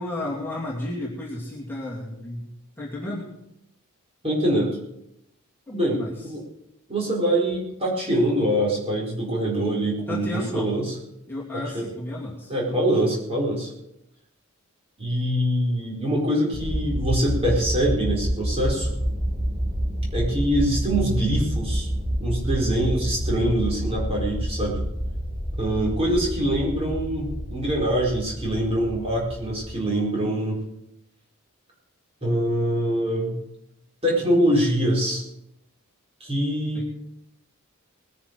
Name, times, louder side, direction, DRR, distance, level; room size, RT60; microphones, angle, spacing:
voice 1, 0.0-2.5 2.8-3.3 5.7-6.3 10.1-10.7 11.3-12.8 36.7-36.9, left 1 dB, 10° left, -6 dB, 2.6 m, -33 dB
voice 2, 4.2-4.8 5.7-6.0 6.2-6.4 6.9-10.3 10.5-10.9 11.5-11.9 12.5-13.7 15.0-18.9 20.1-21.9 22.2-24.8 25.6-30.6 32.2-33.3 34.0-35.2 36.2-36.9, right 1 dB, 25° right, -3 dB, 4.5 m, -24 dB
sound 1, 16.5-29.7, equal, 10° right, 5.5 m, -28 dB
20.0 x 10.5 x 4.7 m, 0.83 s
head